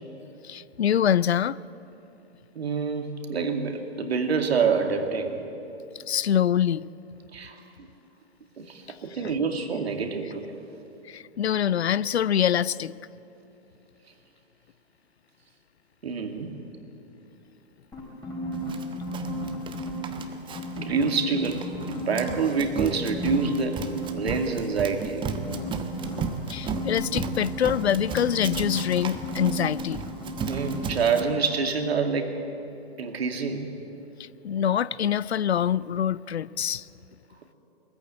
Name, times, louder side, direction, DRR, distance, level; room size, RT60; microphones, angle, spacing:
voice 1, 0.5-1.6 6.1-6.9 11.1-12.9 26.5-30.0 34.4-36.8, left 9 dB, 80° left, 0.6 m, -25 dB
voice 2, 2.6-5.4 7.3-7.9 8.6-10.5 16.0-16.6 20.8-23.8 24.1-25.3 30.4-32.4 33.0-33.7, right 5 dB, 75° right, 2.3 m, -27 dB
sound 1, 17.9-20.2 20.5-22.6 22.9-24.4 25.2-30.9 31.1-31.3, equal, 10° left, 4.4 m, -34 dB
Run, 18.7-31.2, right 6 dB, 15° right, 1.1 m, -35 dB
21.5 x 14.5 x 8.6 m
hypercardioid pair, 120°, 32 cm